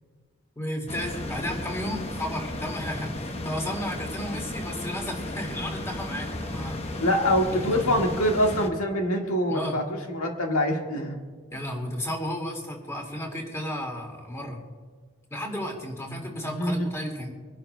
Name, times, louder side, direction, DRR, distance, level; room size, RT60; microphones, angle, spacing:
voice 1, 0.6-7.0 7.4-7.9 9.5-9.8 11.5-14.6 15.3-17.3, left 1 dB, 15° left, 0 dB, 2.1 m, -33 dB
sound 1, 0.9-8.7, left 1 dB, 30° left, 0.8 m, -34 dB
voice 2, 7.0-11.2 16.1-16.9, equal, 85° left, 1 dB, 1.7 m, -25 dB
25.5 x 11.5 x 2.2 m, 1.6 s
head